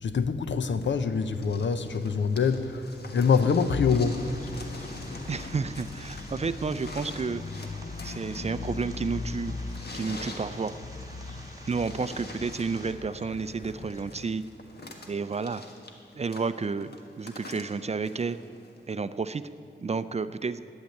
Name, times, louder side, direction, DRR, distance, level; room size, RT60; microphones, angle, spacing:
voice 1, 0.0-4.3, left 5 dB, 75° left, 11 dB, 0.7 m, -25 dB
sound 1, 0.8-18.9 19.9-20.0, left 2 dB, 55° left, 1.5 m, -46 dB
sound 2, 3.9-14.3, left 3 dB, 40° left, 0.7 m, -40 dB
sound 3, 4.0-12.9, right 2 dB, 20° right, 1.4 m, -51 dB
voice 2, 5.3-7.4 8.0-9.6 9.9-10.8 11.7-14.4 15.1-15.6 16.2-18.4 18.9-19.4 19.8-20.6, right 4 dB, 35° right, 13 dB, 0.4 m, -31 dB
12.0 x 8.2 x 9.4 m, 2.7 s
wide cardioid pair, 90°, 19 cm